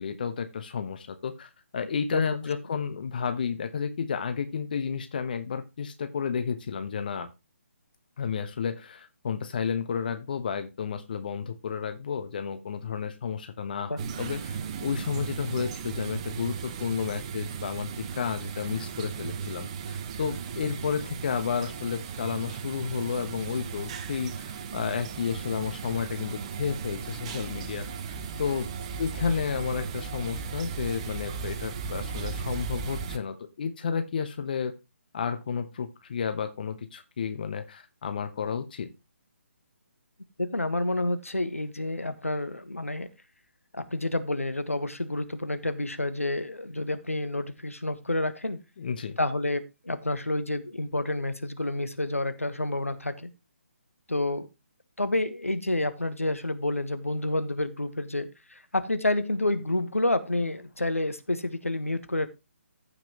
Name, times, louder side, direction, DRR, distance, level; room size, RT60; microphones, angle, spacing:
voice 1, 0.0-7.3 8.2-28.7 29.0-34.7 35.1-38.9 48.8-49.2, left 6 dB, 40° left, 9 dB, 1.1 m, -32 dB
sound 1, 14.0-33.2, right 6 dB, 25° right, 0.9 m, -36 dB
voice 2, 40.4-43.1 43.7-48.6 49.2-53.3 54.1-54.5 55.0-62.3, left 2 dB, 80° left, 11 dB, 1.4 m, -29 dB
15.0 x 6.0 x 3.0 m, 0.25 s
figure-of-eight pair, 140°, 7 cm